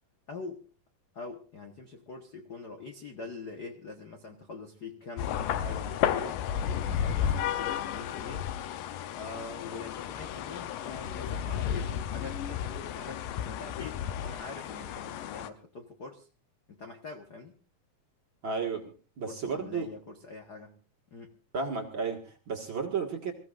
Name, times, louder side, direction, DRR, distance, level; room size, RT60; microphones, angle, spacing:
voice 1, 0.3-0.7 1.1-6.5 6.8-8.5 9.1-16.3 16.7-17.6 19.3-20.8 21.1-21.4, left 4 dB, 60° left, 1.0 m, -44 dB
sound 1, 5.2-15.5, left 9 dB, 75° left, 2.4 m, -33 dB
voice 2, 18.4-19.9 21.5-23.3, right 5 dB, 40° right, 2.0 m, -33 dB
26.5 x 15.5 x 2.6 m
omnidirectional pair, 4.0 m